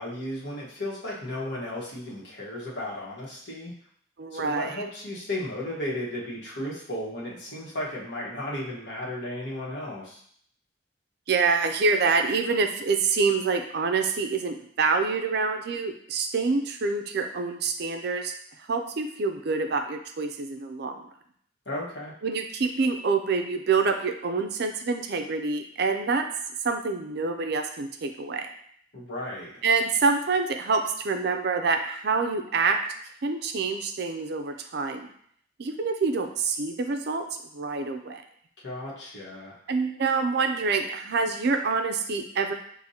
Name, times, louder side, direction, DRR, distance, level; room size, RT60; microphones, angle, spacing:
voice 1, 0.0-3.7 4.3-10.2 21.6-22.1 28.9-29.5 38.6-39.6, left 1 dB, 60° left, -5 dB, 1.3 m, -34 dB
voice 2, 4.2-4.8 11.3-21.0 22.2-26.3 26.6-28.5 29.6-32.8 33.2-35.1 35.6-37.2 37.5-38.2 39.7-42.5, right 4 dB, 55° right, 6 dB, 0.4 m, -26 dB
6.3 x 2.5 x 2.8 m, 0.63 s
head